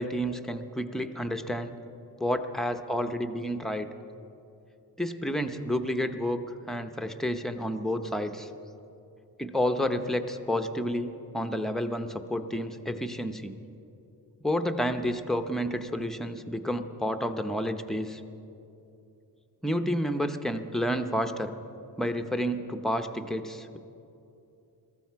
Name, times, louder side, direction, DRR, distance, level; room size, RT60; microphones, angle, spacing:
voice 1, 0.0-1.7 2.2-3.9 5.0-6.4 6.7-8.5 9.4-13.5 14.4-18.2 19.6-21.5 22.0-23.8, equal, ahead, 6 dB, 0.7 m, -30 dB
22.5 x 14.0 x 4.6 m, 2.7 s
wide cardioid pair, 140°, 37 cm